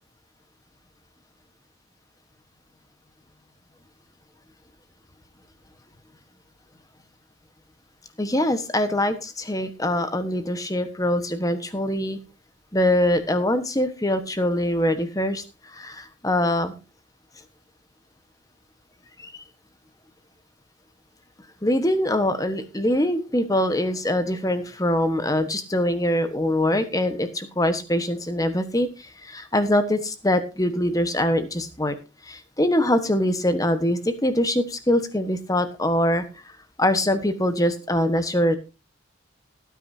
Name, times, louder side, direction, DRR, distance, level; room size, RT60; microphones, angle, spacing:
voice 1, 8.2-12.2 12.7-16.8 19.2-19.4 21.6-32.0 32.2-36.2 36.8-38.6, left 1 dB, 20° left, 10 dB, 1.3 m, -23 dB
17.5 x 9.5 x 2.8 m, 0.29 s
head